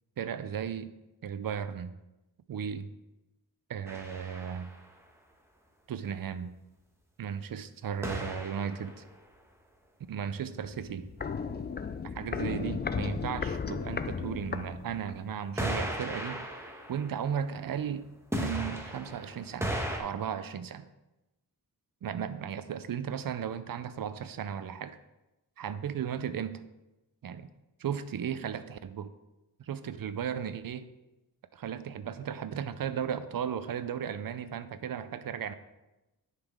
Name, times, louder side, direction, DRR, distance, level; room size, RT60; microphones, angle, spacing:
voice 1, 0.2-1.0 1.2-2.0 2.5-2.9 3.7-4.7 5.9-6.5 7.2-9.0 10.1-11.1 12.1-16.5 16.9-18.1 18.4-19.7 20.0-20.9 22.0-25.0 25.6-26.6 27.2-27.5 27.8-29.1 29.6-30.9 31.5-35.5, right 8 dB, 65° right, 12 dB, 0.6 m, -35 dB
sound 1, 3.9-4.9 8.0-9.1 15.6-17.9 18.3-20.0, right 1 dB, 5° right, 1.2 m, -36 dB
Walk footsteps, 10.6-15.3 15.6-15.7, left 5 dB, 30° left, 0.3 m, -35 dB
10.0 x 5.8 x 3.6 m, 1.0 s
wide cardioid pair, 115°, 38 cm